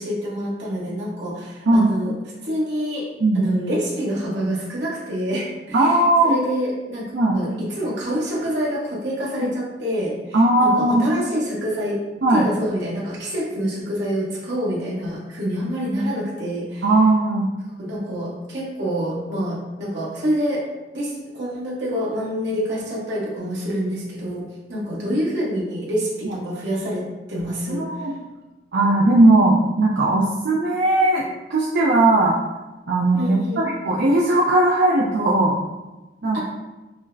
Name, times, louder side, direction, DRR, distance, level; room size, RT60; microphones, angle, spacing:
voice 1, 0.0-2.1 2.4-3.1 3.3-6.0 6.2-12.0 12.3-16.9 17.8-20.6 20.9-27.0 27.3-28.1 33.1-33.6 36.3-36.4, equal, 80° right, -6 dB, 1.2 m, -26 dB
voice 2, 5.7-6.3 7.1-7.4 10.3-11.0 12.2-12.4 16.8-17.5 26.3-26.4 27.7-28.1 28.7-31.2 31.5-32.3 32.9-35.5 36.2-36.4, right 2 dB, 65° right, -4 dB, 0.5 m, -18 dB
6.1 x 2.1 x 2.6 m, 1.1 s
head